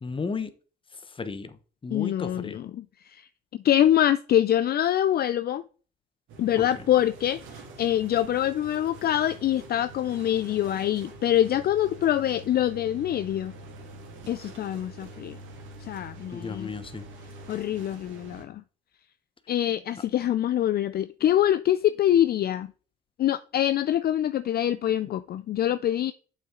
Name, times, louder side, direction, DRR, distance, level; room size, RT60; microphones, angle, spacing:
voice 1, 0.0-0.5 1.1-1.6 1.8-2.7 6.6-6.9 16.3-17.1, left 4 dB, 25° left, 0.9 m, -34 dB
voice 2, 1.9-5.6 6.4-13.5 14.3-15.4 15.8-16.7 17.5-18.6 19.5-22.7 23.2-26.1, left 11 dB, 50° left, 0.4 m, -25 dB
sound 1, 6.3-18.4, right 2 dB, 80° right, 1.9 m, -45 dB
7.0 x 5.8 x 3.8 m
cardioid pair, 90°, 20 cm